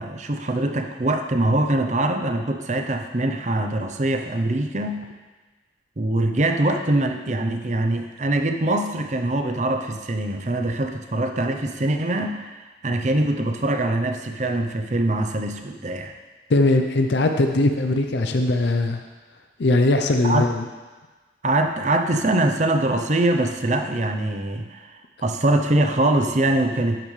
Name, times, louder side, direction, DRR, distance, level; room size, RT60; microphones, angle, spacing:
voice 1, 0.0-5.0 6.0-12.5 12.8-16.1 20.2-20.5 21.4-27.0, right 1 dB, 40° right, 5 dB, 0.7 m, -23 dB
voice 2, 16.5-19.0 19.6-20.6, left 2 dB, 65° left, 5 dB, 0.6 m, -20 dB
12.0 x 8.9 x 3.3 m, 1.3 s
head